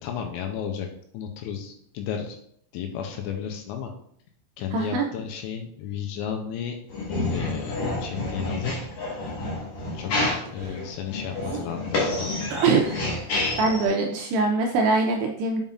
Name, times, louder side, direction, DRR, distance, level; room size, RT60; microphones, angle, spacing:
voice 1, 0.0-0.9 1.1-2.4 2.7-3.9 4.6-6.8 7.3-8.7 9.9-10.1 10.5-12.6, left 8 dB, 85° left, 4 dB, 2.8 m, -33 dB
voice 2, 4.7-5.0 10.6-10.8 11.4-11.6 12.5-13.3 13.6-15.6, right 3 dB, 80° right, 2 dB, 2.4 m, -23 dB
sound 1, 6.9-13.9, left 2 dB, 55° left, 2.2 m, -29 dB
7.1 x 5.4 x 2.5 m, 0.66 s
omnidirectional pair, 5.3 m